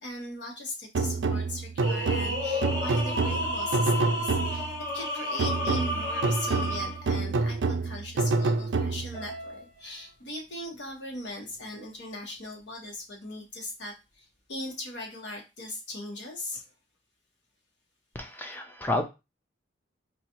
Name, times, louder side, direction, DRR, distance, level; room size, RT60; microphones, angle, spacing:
voice 1, 0.0-4.7 4.9-16.7, left 2 dB, 80° left, 0 dB, 1.2 m, -39 dB
sound 1, 0.9-4.8 5.4-9.3, right 3 dB, 80° right, 0.4 m, -28 dB
sound 2, 1.8-7.1 9.1-9.6, left 1 dB, 45° left, 0.9 m, -32 dB
voice 2, 18.1-19.0, left 2 dB, 10° left, 5 dB, 0.4 m, -30 dB
4.0 x 2.3 x 2.9 m, 0.26 s
head